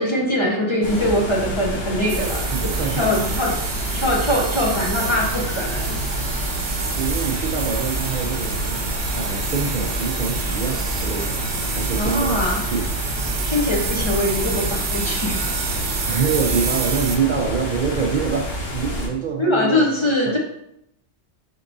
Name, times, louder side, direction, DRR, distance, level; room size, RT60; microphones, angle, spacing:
voice 1, 0.0-2.7 3.0-3.5 3.9-6.0 12.0-12.6 13.4-15.5 19.4-20.4, left 1 dB, 30° left, -1 dB, 0.6 m, -22 dB
sound 1, 0.8-19.1, equal, 60° left, 1.2 m, -28 dB
sound 2, 2.1-17.2, right 5 dB, 75° right, 0.9 m, -28 dB
voice 2, 2.5-3.2 7.0-13.3 16.1-20.4, right 6 dB, 60° right, 1 dB, 0.5 m, -26 dB
4.5 x 4.5 x 2.6 m, 0.78 s
omnidirectional pair, 1.1 m